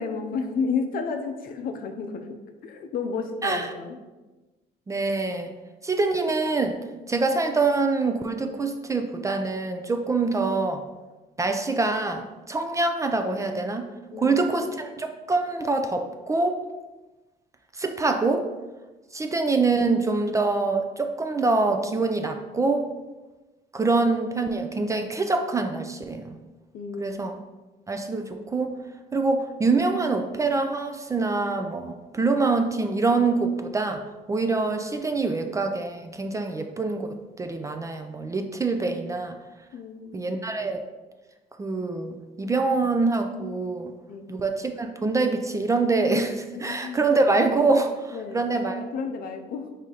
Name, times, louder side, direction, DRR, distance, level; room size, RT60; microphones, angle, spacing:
voice 1, 0.0-4.0 14.1-14.4 26.7-27.2 39.7-40.3 44.1-44.4 46.5-47.1 48.1-48.5 48.8-49.7, left 5 dB, 60° left, 5 dB, 0.6 m, -32 dB
voice 2, 4.9-5.5 5.8-6.8 7.1-10.8 11.4-13.9 14.2-16.6 17.7-18.5 19.1-22.9 23.7-26.4 27.0-27.3 27.9-28.8 29.1-34.0 34.3-39.4 40.1-40.8 41.6-43.9 44.3-48.8, right 3 dB, 20° right, 6 dB, 0.3 m, -25 dB
4.8 x 2.8 x 3.8 m, 1.2 s
cardioid pair, 110°, 17 cm